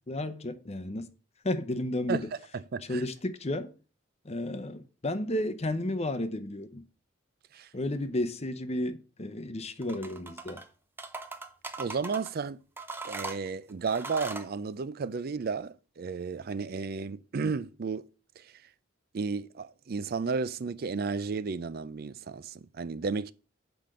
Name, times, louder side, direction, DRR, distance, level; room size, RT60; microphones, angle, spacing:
voice 1, 0.1-1.1 1.4-2.2 2.9-3.7 4.2-6.8 7.7-10.6, left 1 dB, 30° left, 0.8 m, -32 dB
voice 2, 2.1-3.1 7.5-7.7 11.8-12.6 13.0-18.0 18.4-18.7 19.1-23.3, right 4 dB, 50° right, 0.4 m, -33 dB
sound 1, 9.8-10.7 11.0-12.3 12.8-14.5, right 3 dB, 10° right, 0.7 m, -40 dB
7.7 x 5.2 x 6.2 m
head